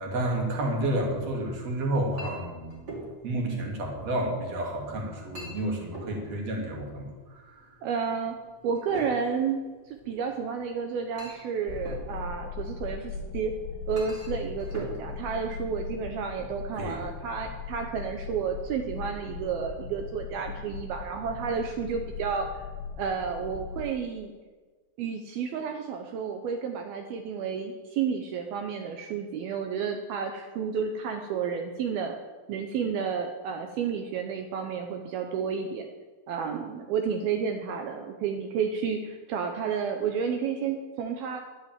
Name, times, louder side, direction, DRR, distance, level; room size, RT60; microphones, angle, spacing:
voice 1, 0.0-2.9 3.2-7.6 16.7-17.0, right 1 dB, 40° right, 0 dB, 3.0 m, -30 dB
Chink clink, 1.1-16.2, right 1 dB, 25° right, 3.1 m, -46 dB
voice 2, 7.8-8.4 8.6-9.6 9.9-13.5 13.9-22.6 23.0-24.3 25.0-32.2 32.5-35.9 36.3-41.4, right 6 dB, 80° right, 4 dB, 2.2 m, -31 dB
sound 1, 11.7-23.9, left 5 dB, 80° left, 3.2 m, -39 dB
12.0 x 8.8 x 9.0 m, 1.4 s
omnidirectional pair, 5.5 m